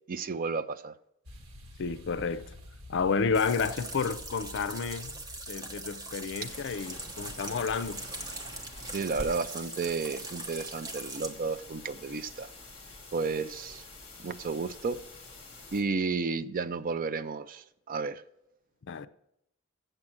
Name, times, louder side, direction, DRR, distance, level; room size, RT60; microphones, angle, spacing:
voice 1, 0.1-1.0 8.9-12.5 13.1-13.8 14.2-15.0 15.7-18.2, right 4 dB, 40° right, 0.4 m, -32 dB
sound 1, 1.2-8.5, left 1 dB, 75° right, 1.5 m, -50 dB
voice 2, 1.8-2.5 2.9-5.2 5.5-8.0 18.9-19.1, left 5 dB, 55° left, 0.5 m, -31 dB
sound 2, 3.3-11.3, right 2 dB, 15° right, 0.9 m, -41 dB
sound 3, 6.4-15.8, left 2 dB, 25° left, 2.0 m, -47 dB
7.8 x 7.3 x 7.7 m
head